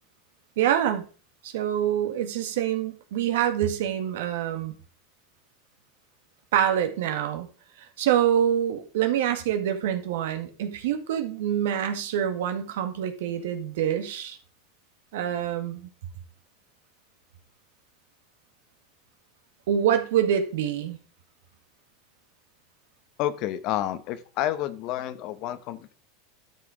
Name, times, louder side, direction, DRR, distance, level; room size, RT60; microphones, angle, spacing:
voice 1, 0.6-1.0 1.4-4.7 6.5-7.5 7.8-14.4 15.1-15.9 19.7-21.0, right 10 dB, 80° right, 7 dB, 1.9 m, -26 dB
voice 2, 23.2-25.9, left 12 dB, 55° left, 13 dB, 1.1 m, -29 dB
12.0 x 5.8 x 5.1 m, 0.38 s
supercardioid pair, 125°, 0 cm